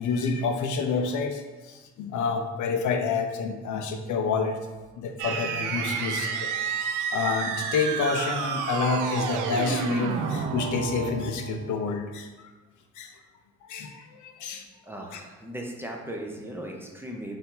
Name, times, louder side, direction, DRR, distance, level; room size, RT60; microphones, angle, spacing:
voice 1, 0.0-4.6 5.0-6.5 7.1-12.5 13.0-13.1 13.7-14.7 15.1-15.2, left 4 dB, 75° left, 5 dB, 0.6 m, -28 dB
sound 1, 5.2-11.7, right 6 dB, 85° right, 0.5 m, -30 dB
voice 2, 14.8-17.4, right 1 dB, 10° right, -1 dB, 0.6 m, -37 dB
4.4 x 2.7 x 3.8 m, 1.2 s
cardioid pair, 90°, 30 cm